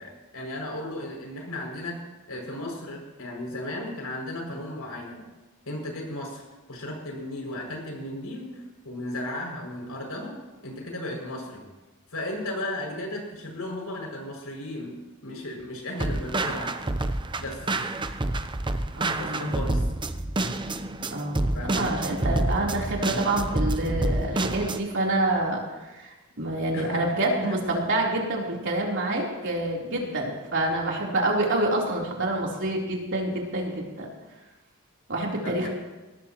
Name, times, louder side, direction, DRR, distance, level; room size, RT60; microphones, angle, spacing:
voice 1, 0.0-2.0 2.3-5.3 5.6-6.4 6.7-10.3 10.6-11.6 12.1-15.0 15.2-16.8 17.4-17.6 19.1-19.8 21.5-21.9 26.7-27.1 27.4-27.6 35.4-35.7, left 1 dB, 85° left, -1 dB, 6.4 m, -35 dB
sound 1, 16.0-24.8, right 2 dB, 20° right, 0.7 m, -28 dB
voice 2, 19.0-19.5 21.1-21.5 21.7-34.1 35.1-35.7, right 1 dB, 55° right, -2 dB, 3.6 m, -27 dB
22.5 x 17.5 x 3.0 m, 1.1 s
head